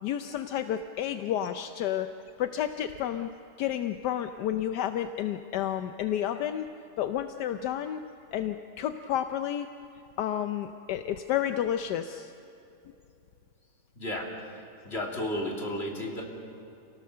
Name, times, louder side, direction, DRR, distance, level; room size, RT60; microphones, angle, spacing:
voice 1, 0.0-2.1 2.4-3.3 3.6-6.7 7.0-8.0 8.3-9.7 10.2-12.3, left 10 dB, 80° left, 8 dB, 1.3 m, -31 dB
voice 2, 13.9-14.3 14.8-16.2, left 1 dB, 35° left, -1 dB, 3.3 m, -32 dB
29.0 x 18.0 x 6.7 m, 2.8 s
omnidirectional pair, 1.8 m